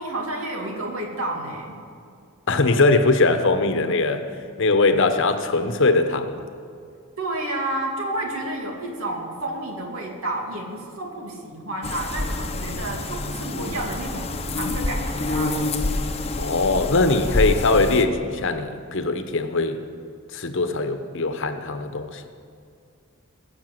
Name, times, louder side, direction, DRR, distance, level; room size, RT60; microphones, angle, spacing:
voice 1, 0.0-1.8 7.2-15.7, right 1 dB, 75° right, 0 dB, 2.5 m, -30 dB
voice 2, 2.5-4.3 4.6-6.4 16.3-19.8 20.3-22.3, left 3 dB, 60° left, 8 dB, 1.0 m, -21 dB
sound 1, 11.8-18.0, left 2 dB, 30° left, 0.9 m, -27 dB
20.5 x 6.9 x 7.7 m, 2.4 s
head